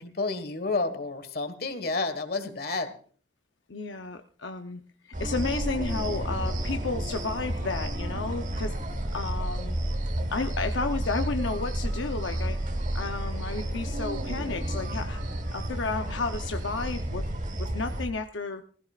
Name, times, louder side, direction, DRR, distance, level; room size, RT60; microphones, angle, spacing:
voice 1, 0.0-2.9, left 3 dB, 55° left, 9 dB, 1.6 m, -30 dB
voice 2, 3.7-4.8 5.2-8.8 9.1-9.8 10.3-12.6 12.9-15.2 15.5-17.3 17.6-18.6, left 3 dB, 90° left, 6 dB, 0.7 m, -32 dB
sound 1, 5.1-18.1, right 1 dB, 40° right, 1.3 m, -31 dB
19.0 x 15.5 x 2.4 m, 0.43 s
head